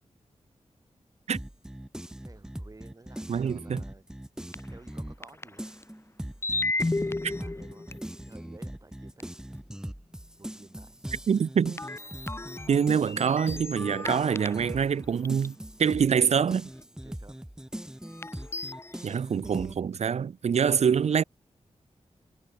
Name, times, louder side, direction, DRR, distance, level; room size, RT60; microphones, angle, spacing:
sound 1, 1.3-5.3 5.6-19.8, right 1 dB, 5° right, 2.2 m, -41 dB
voice 1, 2.2-4.0 4.5-5.7 7.3-9.2 10.4-11.0 17.0-17.4, right 3 dB, 30° right, 7.5 m, -53 dB
voice 2, 3.3-3.8 7.2-7.3 11.3-11.8 12.7-16.7 19.0-21.2, right 7 dB, 65° right, 0.6 m, -25 dB
sound 2, 4.5-4.7 5.2-5.8 6.4-8.4 9.2-9.3 11.8-14.8 15.2-15.5 16.8-16.9 18.1-19.0, left 2 dB, 20° left, 1.3 m, -34 dB
wide cardioid pair, 120°, 12 cm